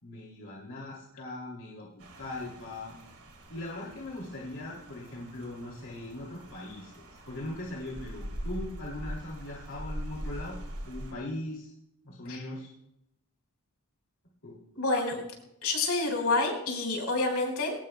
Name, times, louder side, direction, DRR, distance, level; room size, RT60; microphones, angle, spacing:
voice 1, 0.0-1.9 2.2-3.0 3.5-10.6 10.8-11.7 12.0-12.7 14.4-14.6 15.1-15.2, left 1 dB, 65° left, -3 dB, 2.7 m, -40 dB
Rain, 2.0-11.1, equal, 75° right, 3.0 m, -42 dB
voice 2, 14.8-15.2 15.6-17.7, left 3 dB, 85° left, 0 dB, 4.4 m, -28 dB
22.5 x 18.0 x 2.2 m, 0.83 s
head